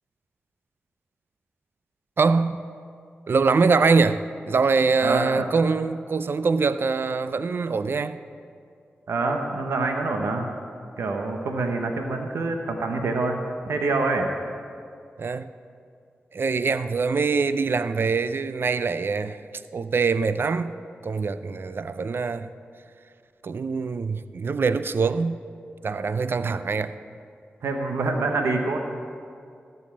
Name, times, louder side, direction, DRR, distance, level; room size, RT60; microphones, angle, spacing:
voice 1, 2.2-2.6 3.3-8.2 15.2-15.5 16.3-19.4 19.7-20.8 21.0-22.5 23.4-25.4 25.8-26.9, right 4 dB, 60° right, 13 dB, 0.4 m, -23 dB
voice 2, 5.0-5.5 9.1-10.5 11.0-13.4 13.6-14.3 26.4-26.5 27.6-28.8, right 3 dB, 85° right, 3 dB, 1.0 m, -26 dB
14.0 x 5.5 x 7.5 m, 2.4 s
cardioid pair, 45°, 4 cm